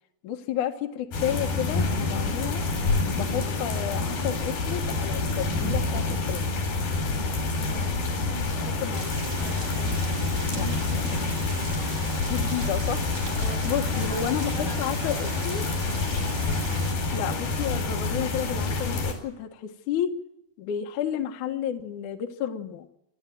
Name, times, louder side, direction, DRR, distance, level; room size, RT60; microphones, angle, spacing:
voice 1, 0.2-2.6 3.1-6.4 8.8-9.1 10.6-10.9 12.3-13.1 13.6-15.6 17.1-20.1 20.6-22.9, left 9 dB, 65° left, 5 dB, 2.7 m, -31 dB
sound 1, 1.1-19.1, left 3 dB, 80° left, 6.1 m, -27 dB
voice 2, 7.6-8.8 9.4-11.0 11.8-12.3 13.2-15.3, left 1 dB, 25° left, -1 dB, 7.5 m, -43 dB
Rain, 8.9-16.9, right 3 dB, 50° right, 5.0 m, -40 dB
28.0 x 12.5 x 9.2 m, 0.80 s
omnidirectional pair, 4.1 m